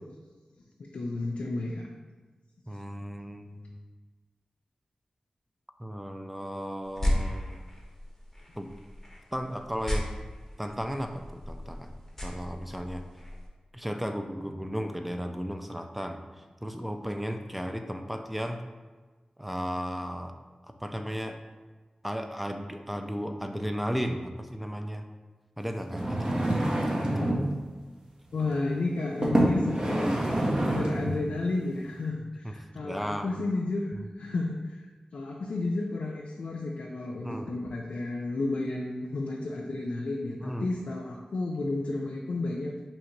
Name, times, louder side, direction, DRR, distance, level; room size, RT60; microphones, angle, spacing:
voice 1, 0.9-1.9 27.2-27.3 28.3-30.3 30.6-34.8 35.1-42.8, left 2 dB, 80° left, -1 dB, 0.3 m, -32 dB
voice 2, 2.7-3.8 5.8-7.6 8.6-8.7 9.3-10.1 10.6-11.9 12.2-13.0 13.7-18.6 19.4-20.3 20.8-21.4 22.0-25.0 25.6-27.1 32.4-33.3 33.9-34.1 37.2-37.5 40.4-40.7, equal, 5° right, 5 dB, 0.3 m, -35 dB
sound 1, 6.8-13.5, left 1 dB, 10° left, 0.8 m, -35 dB
sound 2, 25.8-27.5 28.3-28.5 29.2-31.2 31.8-31.9, right 1 dB, 35° right, 0.7 m, -27 dB
2.9 x 2.7 x 4.4 m, 1.3 s
wide cardioid pair, 60°, 2 cm